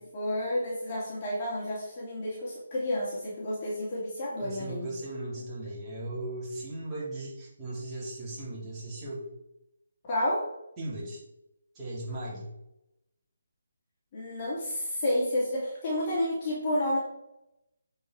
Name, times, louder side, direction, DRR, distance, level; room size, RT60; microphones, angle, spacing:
voice 1, 0.1-4.9 10.0-10.5 14.1-17.0, left 1 dB, 35° left, -6 dB, 2.6 m, -30 dB
voice 2, 4.4-9.3 10.8-11.2 11.7-12.5, right 1 dB, 15° right, -7 dB, 3.3 m, -37 dB
8.8 x 4.9 x 4.7 m, 0.86 s
figure-of-eight pair, 150°, 0 cm